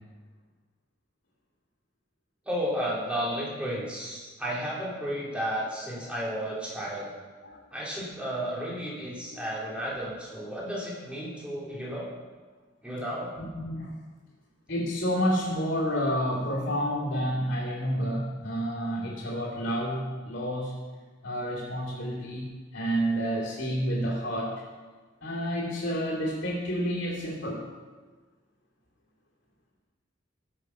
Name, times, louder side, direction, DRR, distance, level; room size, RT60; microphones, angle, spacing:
voice 1, 2.5-7.1 7.7-12.1 12.8-13.3, equal, 5° right, -5 dB, 2.5 m, -33 dB
voice 2, 13.5-14.0 14.7-20.8 21.2-24.6 25.2-27.7, equal, 60° left, -8 dB, 2.9 m, -29 dB
14.5 x 6.5 x 5.6 m, 1.4 s
head